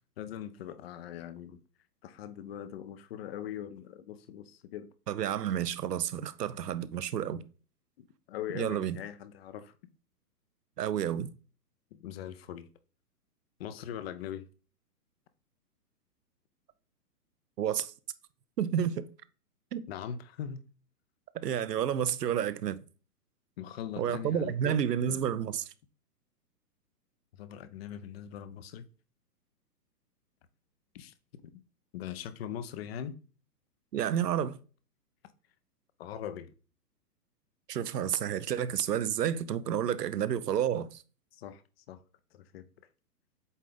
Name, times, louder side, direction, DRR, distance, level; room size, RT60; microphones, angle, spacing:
voice 1, 0.2-1.6 2.0-4.9 8.0-9.7 11.9-12.7 13.6-14.5 19.9-20.6 23.6-24.8 27.3-28.9 30.9-31.6 31.9-33.2 36.0-36.5 41.3-42.0 42.3-42.7, left 9 dB, 40° left, 0.7 m, -41 dB
voice 2, 5.1-7.4 8.5-9.0 10.8-11.3 17.6-17.9 18.6-19.1 19.7-19.8 21.3-22.8 24.0-25.7 33.9-34.6 37.7-41.0, right 9 dB, 75° right, 0.9 m, -30 dB
8.1 x 3.7 x 3.9 m
hypercardioid pair, 140°, 48 cm